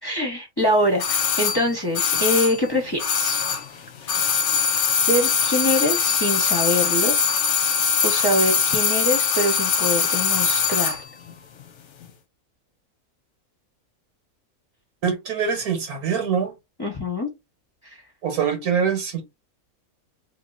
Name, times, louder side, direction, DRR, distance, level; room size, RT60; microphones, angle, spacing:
voice 1, 0.0-3.4 5.1-7.1 8.0-11.0 16.8-17.3 17.8-18.0, left 1 dB, 20° left, 1.0 m, -24 dB
sound 1, 1.0-3.8 4.0-11.0 11.3-11.4, left 6 dB, 60° left, 0.9 m, -22 dB
voice 2, 15.0-16.5 18.2-19.2, right 7 dB, 80° right, 1.9 m, -24 dB
3.2 x 3.0 x 4.0 m
omnidirectional pair, 1.5 m